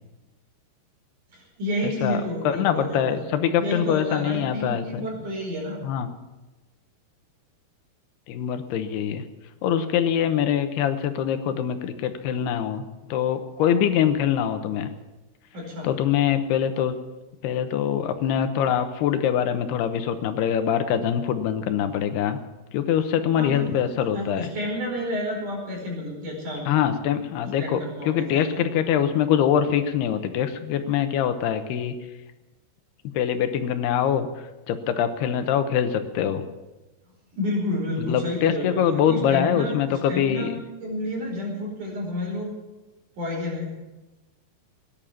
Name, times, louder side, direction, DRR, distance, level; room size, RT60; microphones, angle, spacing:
voice 1, 1.3-3.1 3.6-5.8 15.5-15.9 23.4-23.8 24.1-26.9 27.6-28.6 37.3-42.6 43.2-43.7, left 1 dB, 50° right, -1 dB, 6.3 m, -30 dB
voice 2, 2.4-5.1 5.8-6.1 8.3-9.2 9.6-14.9 15.8-17.0 17.4-22.4 22.7-24.5 26.7-27.8 28.1-31.9 33.1-34.3 34.7-36.4 38.0-40.5, left 9 dB, 90° left, 9 dB, 3.1 m, -24 dB
17.5 x 10.5 x 7.3 m, 1.1 s
omnidirectional pair, 4.6 m